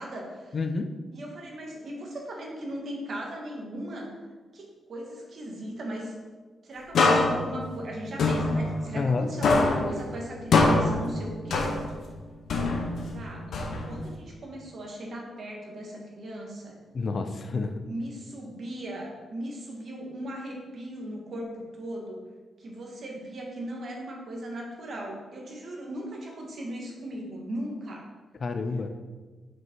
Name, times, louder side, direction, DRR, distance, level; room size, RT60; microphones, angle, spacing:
voice 1, 0.0-0.6 1.1-4.2 4.5-6.1 6.6-11.8 13.0-13.5 13.9-16.7 17.8-22.2 22.6-28.1, right 1 dB, 45° right, -1 dB, 1.6 m, -38 dB
voice 2, 0.5-0.9 8.9-9.3 16.9-17.8 28.4-28.9, left 4 dB, 40° left, 8 dB, 0.4 m, -29 dB
sound 1, 6.9-9.2 9.4-12.1 12.5-14.2, left 3 dB, 65° left, 0.9 m, -25 dB
6.3 x 5.3 x 4.5 m, 1.4 s
wide cardioid pair, 160°, 0 cm